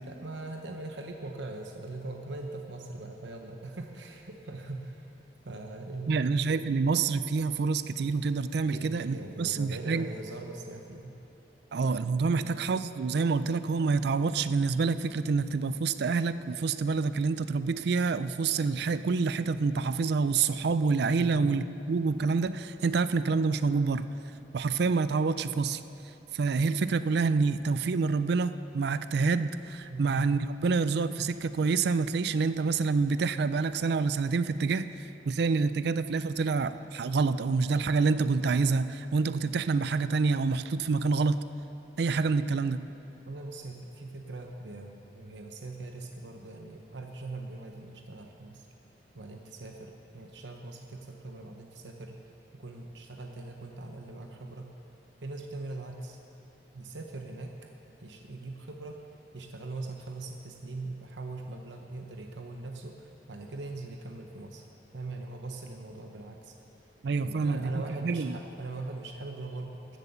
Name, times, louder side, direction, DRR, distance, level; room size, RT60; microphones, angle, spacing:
voice 1, 0.1-5.1 5.4-6.3 8.7-11.2 12.3-12.6 21.2-21.5 29.9-30.2 42.5-42.6 43.3-48.7 49.1-52.2 52.5-54.7 55.2-56.2 56.7-57.5 58.0-59.0 59.3-64.6 64.9-66.5 67.2-70.0, right 2 dB, 85° right, 3 dB, 0.9 m, -41 dB
voice 2, 6.1-10.1 11.7-24.1 24.5-25.8 26.3-34.9 35.2-41.4 42.0-42.8 67.0-68.4, right 4 dB, 65° right, 13 dB, 0.4 m, -27 dB
14.5 x 8.1 x 6.9 m, 2.8 s
head